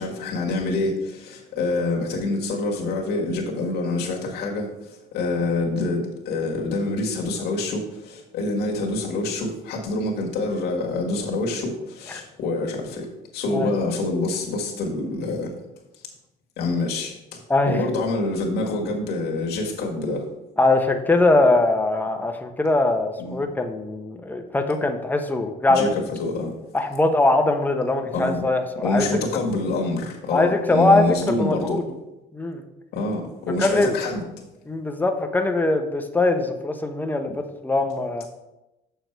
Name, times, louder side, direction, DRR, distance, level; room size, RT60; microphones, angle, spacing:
voice 1, 0.0-13.1 13.3-15.5 16.6-20.2 23.2-23.4 25.7-25.9 26.2-26.5 28.1-28.4 28.8-31.8 32.9-34.2, left 2 dB, 70° left, -1 dB, 1.8 m, -26 dB
voice 2, 20.6-25.9 26.7-29.2 30.3-31.8 32.3-32.6 33.6-33.9 34.7-38.3, left 2 dB, 10° left, 5 dB, 0.9 m, -21 dB
6.6 x 6.3 x 4.6 m, 0.96 s
cardioid pair, 110°, 17 cm